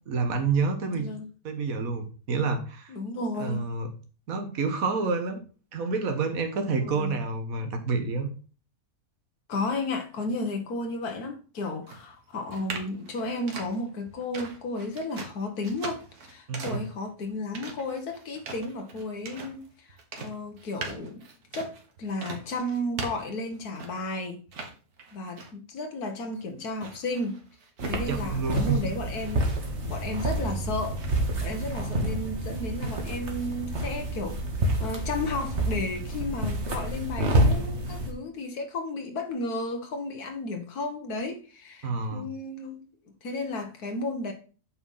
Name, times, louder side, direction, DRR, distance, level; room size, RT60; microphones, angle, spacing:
voice 1, 0.1-1.1 1.4-2.9 3.4-3.9 4.3-5.4 5.7-8.3 16.5-16.9 28.1-28.8 41.8-42.3, right 4 dB, 70° right, 1.7 m, -28 dB
voice 2, 0.9-1.3 2.9-3.7 6.7-7.2 9.5-21.3 21.5-24.4 25.1-27.4 27.8-29.5 29.8-31.0 31.4-34.4 34.8-42.8 43.2-44.3, left 2 dB, 85° left, 1.8 m, -33 dB
sound 1, 11.8-24.1 24.5-25.7 26.1-28.7 29.1-30.6 31.0-31.2, right 3 dB, 85° right, 2.1 m, -41 dB
sound 2, 27.8-38.1, right 1 dB, 50° right, 1.9 m, -28 dB
8.7 x 4.6 x 5.5 m
omnidirectional pair, 1.6 m